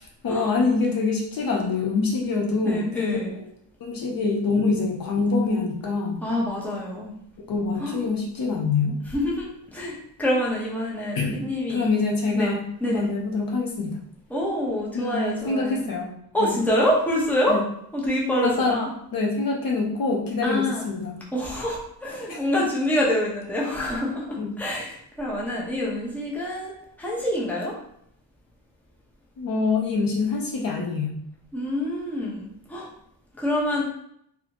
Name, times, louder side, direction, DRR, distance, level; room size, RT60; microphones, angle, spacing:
voice 1, 0.2-3.4 3.8-6.2 7.5-9.0 11.1-11.4 11.7-14.0 14.9-16.5 17.5-17.6 18.4-18.8 19.1-21.2 22.3-22.4 24.4-24.6 29.4-31.2, left 4 dB, 55° left, 0 dB, 0.6 m, -25 dB
voice 2, 2.7-3.3 6.2-7.1 7.8-8.0 9.1-11.9 12.3-12.5 12.8-13.0 14.3-15.9 16.3-17.6 17.9-18.9 20.4-20.9 21.3-27.7 31.5-32.9 33.3-33.8, left 1 dB, 5° left, -4 dB, 0.8 m, -26 dB
4.1 x 2.7 x 2.9 m, 0.71 s
wide cardioid pair, 165°, 42 cm